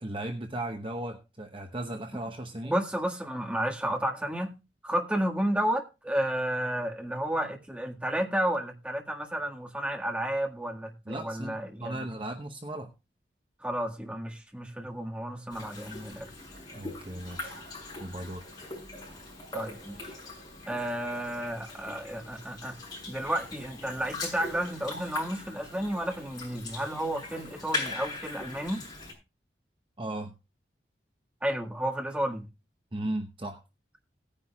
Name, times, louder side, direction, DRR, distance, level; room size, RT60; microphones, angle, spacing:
voice 1, 0.0-2.8 11.1-12.9 16.7-17.6 18.0-18.4 30.0-30.3 32.9-33.6, right 1 dB, 30° right, 4 dB, 0.9 m, -36 dB
voice 2, 2.6-4.5 4.8-12.1 13.6-16.3 19.5-20.1 20.7-22.8 23.1-28.8 31.4-32.5, right 1 dB, 5° right, 1 dB, 1.7 m, -32 dB
sound 1, 15.5-29.1, left 3 dB, 25° left, 6.6 m, -40 dB
18.0 x 9.9 x 2.3 m, 0.27 s
head